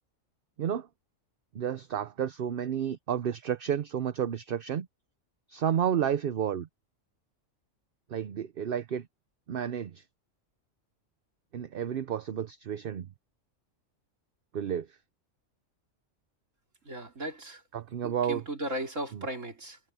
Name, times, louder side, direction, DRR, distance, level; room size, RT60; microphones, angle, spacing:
voice 1, 1.5-4.9 5.5-6.7 8.1-9.1 9.5-10.0 11.5-13.1 14.5-15.0 17.7-18.4, right 9 dB, 50° right, 0.8 m, -31 dB
voice 2, 16.8-17.6 18.0-19.8, right 1 dB, 75° right, 4.5 m, -36 dB
omnidirectional pair, 1.3 m